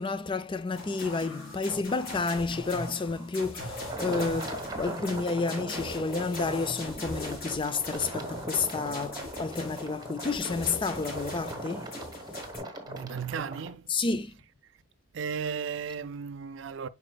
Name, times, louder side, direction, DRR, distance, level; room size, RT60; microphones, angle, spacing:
voice 1, 0.0-11.9 13.9-14.4, left 4 dB, 25° left, 0.4 m, -30 dB
sound 1, 0.7-12.6, left 1 dB, 45° left, 3.5 m, -40 dB
sound 2, 3.9-13.7, right 1 dB, 20° right, 1.0 m, -40 dB
voice 2, 12.9-14.0 14.2-14.5 15.1-16.9, right 6 dB, 60° right, 0.4 m, -35 dB
10.0 x 4.2 x 2.3 m
head